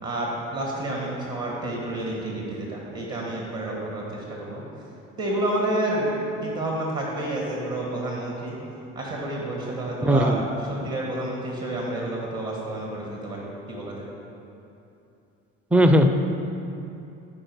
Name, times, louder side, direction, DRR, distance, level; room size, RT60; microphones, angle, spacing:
voice 1, 0.0-4.6 5.2-6.1 6.4-8.6 8.9-10.4 10.7-14.1, right 1 dB, 45° right, -2 dB, 1.8 m, -29 dB
voice 2, 10.0-10.4 15.7-16.1, equal, 5° right, 6 dB, 0.4 m, -17 dB
11.0 x 4.4 x 4.8 m, 2.8 s
figure-of-eight pair, 55°, 39 cm